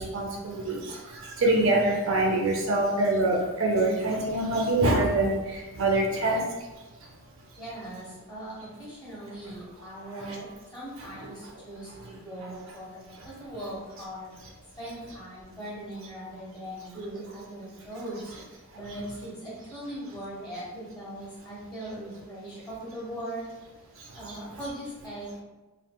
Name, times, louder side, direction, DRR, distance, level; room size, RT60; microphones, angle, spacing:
voice 1, 0.0-6.4 6.7-7.1 10.0-10.4 11.0-11.3 13.2-13.3 18.9-19.0 24.0-24.4, right 2 dB, 60° right, -1 dB, 0.5 m, -26 dB
voice 2, 7.6-13.0 13.2-14.3 14.8-18.3 18.7-23.4 24.1-25.4, right 1 dB, 20° left, -8 dB, 1.2 m, -39 dB
3.7 x 2.3 x 2.2 m, 1.2 s
head